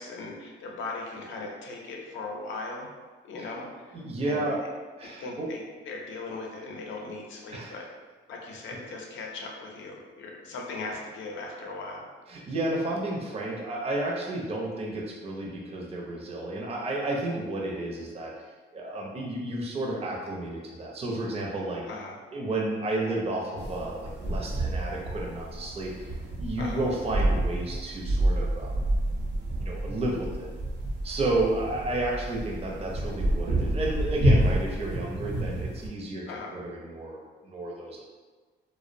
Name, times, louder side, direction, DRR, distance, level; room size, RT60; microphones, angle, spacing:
voice 1, 0.0-2.9 3.2-4.0 4.2-4.5 5.0-7.9 8.3-12.0 21.9-22.2 26.6-26.8 36.3-36.5, left 3 dB, 70° left, 0 dB, 0.5 m, -38 dB
voice 2, 3.9-4.6 5.0-5.5 7.5-7.7 12.3-18.3 18.7-21.8 22.3-28.7 29.6-30.5 31.0-36.2 36.5-38.1, right 2 dB, 30° right, -2 dB, 0.5 m, -32 dB
sound 1, 23.6-35.9, right 1 dB, 65° right, 0.7 m, -29 dB
2.4 x 2.0 x 2.5 m, 1.4 s
cardioid pair, 90°, 20 cm